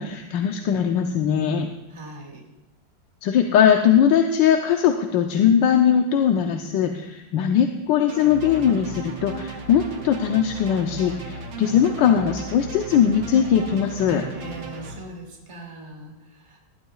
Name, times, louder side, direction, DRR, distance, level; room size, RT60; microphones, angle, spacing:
voice 1, 0.0-1.7 3.2-14.2, left 8 dB, 80° left, 4 dB, 1.4 m, -20 dB
voice 2, 1.9-2.5 14.3-16.6, right 2 dB, 15° right, 0 dB, 1.7 m, -40 dB
sound 1, 8.1-15.0, right 2 dB, 80° right, 2.1 m, -36 dB
19.5 x 12.0 x 2.4 m, 1.0 s
omnidirectional pair, 2.0 m